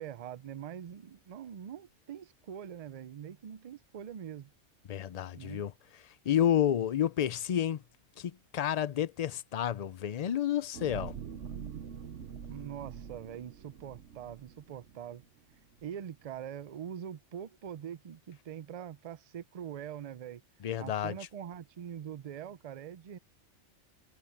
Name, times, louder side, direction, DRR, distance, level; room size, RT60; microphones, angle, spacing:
voice 1, 0.0-4.5 5.3-5.6 12.5-15.2 15.8-20.4 20.8-23.2, right 9 dB, 50° right, 0.4 m, -43 dB
voice 2, 4.9-5.7 6.0-7.8 8.2-11.1 20.6-21.1, left 10 dB, 50° left, 0.4 m, -30 dB
sound 1, 10.7-15.2 15.7-15.9, right 7 dB, 80° right, 1.3 m, -44 dB
omnidirectional pair, 1.2 m